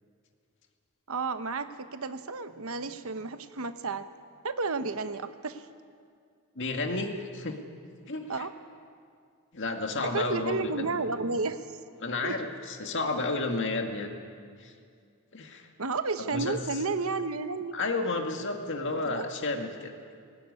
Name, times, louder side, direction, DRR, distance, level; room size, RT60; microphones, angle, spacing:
voice 1, 1.1-4.1 4.4-5.7 8.3-8.5 9.9-11.7 12.2-12.4 15.8-17.8 19.0-19.3, right 4 dB, 70° right, 10 dB, 1.0 m, -32 dB
voice 2, 6.6-7.6 8.1-8.5 9.5-11.0 12.0-14.1 14.6-14.7 15.3-15.7 16.3-16.6 17.7-19.9, left 3 dB, 55° left, 4 dB, 2.0 m, -31 dB
19.0 x 18.0 x 9.7 m, 2.2 s
head